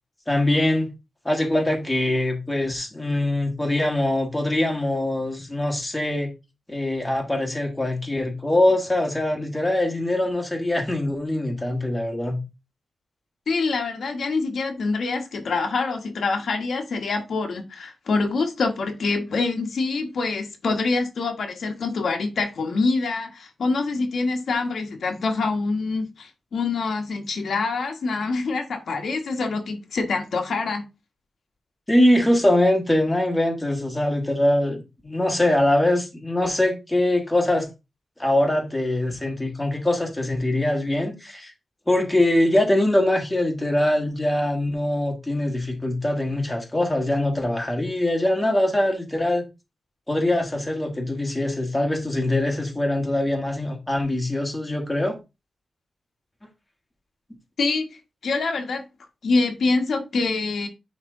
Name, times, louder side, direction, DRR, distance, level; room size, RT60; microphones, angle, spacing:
voice 1, 0.3-0.9 1.2-6.3 6.7-12.4 31.9-37.7 38.2-41.5 41.9-49.4 50.1-55.2, left 1 dB, 10° left, 1.4 m, -23 dB
voice 2, 13.5-30.8 57.6-58.8 59.2-60.7, left 3 dB, 65° left, 1.3 m, -25 dB
9.8 x 3.3 x 3.6 m
wide cardioid pair, 175°, 0 cm